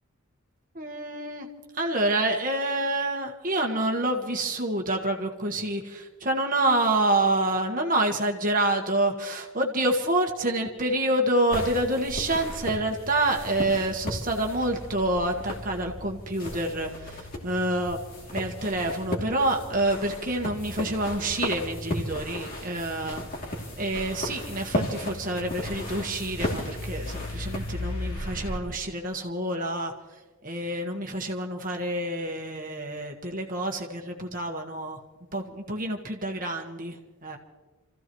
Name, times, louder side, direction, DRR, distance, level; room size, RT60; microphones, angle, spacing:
voice 1, 0.7-18.0 18.3-23.2 23.8-29.9 30.4-35.0 35.3-37.4, right 1 dB, 40° right, 2 dB, 1.5 m, -27 dB
sound 1, 11.5-28.6, left 1 dB, 45° left, 2.8 m, -35 dB
29.0 x 15.5 x 3.1 m, 1.2 s
head